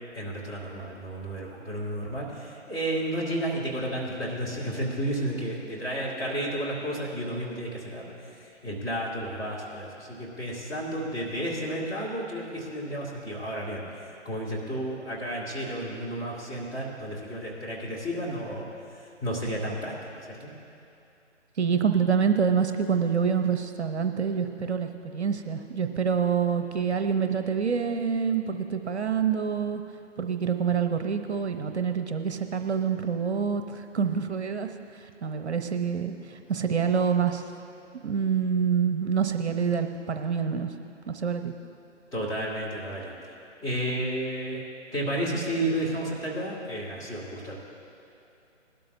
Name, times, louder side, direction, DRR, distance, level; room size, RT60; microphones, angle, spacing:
voice 1, 0.1-13.8 14.2-18.7 18.9-20.5 42.1-43.2 43.6-44.6 44.9-47.6, right 1 dB, 10° left, -7 dB, 1.8 m, -32 dB
voice 2, 21.6-29.8 30.2-37.5 38.0-40.7 41.1-41.5, right 6 dB, 65° right, 7 dB, 0.9 m, -26 dB
20.0 x 12.5 x 2.7 m, 2.7 s
figure-of-eight pair, 145°, 37 cm